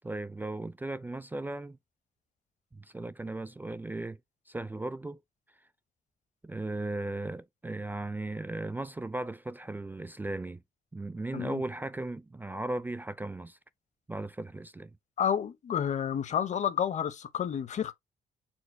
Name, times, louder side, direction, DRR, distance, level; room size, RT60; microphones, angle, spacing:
voice 1, 0.0-1.8 2.7-4.2 4.5-5.2 6.4-10.6 10.9-13.6 14.1-14.9, right 2 dB, 10° right, 0.3 m, -36 dB
voice 2, 15.2-17.9, left 8 dB, 55° left, 0.7 m, -30 dB
4.5 x 2.1 x 4.3 m
cardioid pair, 80°, 15 cm